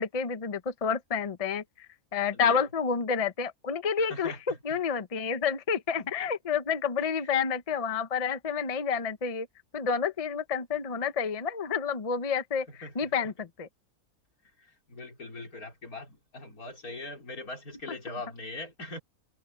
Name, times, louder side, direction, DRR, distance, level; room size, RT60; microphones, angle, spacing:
voice 1, 0.0-1.6 2.1-9.5 9.7-13.7, left 6 dB, 30° left, 0.8 m, -29 dB
voice 2, 2.3-2.6 4.0-4.6 7.0-7.3 12.8-13.1 14.6-19.0, left 2 dB, 85° left, 4.9 m, -42 dB
omnidirectional pair, 1.5 m